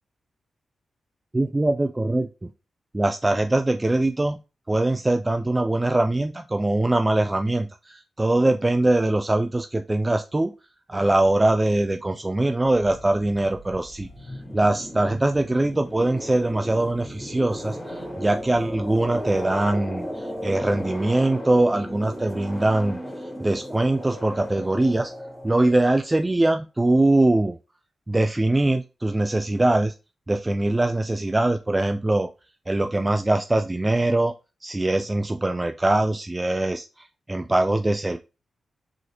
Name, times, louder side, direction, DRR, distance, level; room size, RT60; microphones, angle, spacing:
voice 1, 1.3-2.5 2.9-4.4 4.7-10.5 10.9-14.1 14.5-23.0 23.4-25.1 25.4-27.6 28.1-29.9 30.3-32.3 32.7-34.3 34.6-38.2, right 2 dB, 20° right, 6 dB, 0.4 m, -22 dB
sound 1, 12.7-26.1, equal, 10° left, 2.2 m, -36 dB
3.8 x 3.1 x 2.9 m, 0.29 s
cardioid pair, 60°, 0 cm